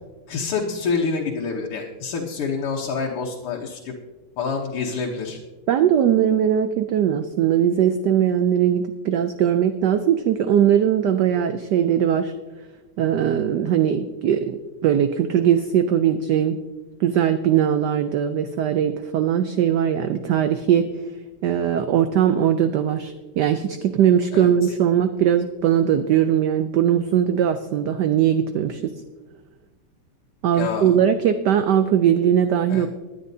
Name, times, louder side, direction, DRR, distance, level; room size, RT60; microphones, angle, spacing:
voice 1, 0.3-3.9 4.4-5.4 24.3-24.7 30.5-31.0 32.7-32.9, left 5 dB, 90° left, -1 dB, 2.0 m, -27 dB
voice 2, 5.7-12.3 13.0-16.6 17.0-20.9 21.4-28.9 30.4-32.9, right 9 dB, 80° right, 10 dB, 0.9 m, -20 dB
19.5 x 10.0 x 2.7 m, 1.3 s
omnidirectional pair, 2.4 m